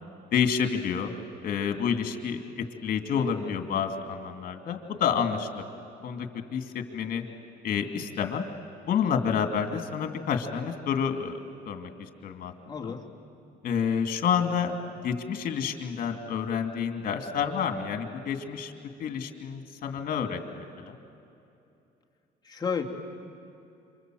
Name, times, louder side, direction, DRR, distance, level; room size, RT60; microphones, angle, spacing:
voice 1, 0.3-1.1 1.4-5.6 6.0-7.2 7.6-8.4 8.9-11.4 11.7-12.5 12.8-12.9 13.6-14.7 15.0-18.7 19.0-21.0, left 7 dB, 55° left, 6 dB, 2.5 m, -29 dB
voice 2, 3.2-3.5 12.6-13.0 22.4-22.8, left 6 dB, 25° left, 1 dB, 2.6 m, -32 dB
27.5 x 25.5 x 7.8 m, 2.7 s
cardioid pair, 110°, 17 cm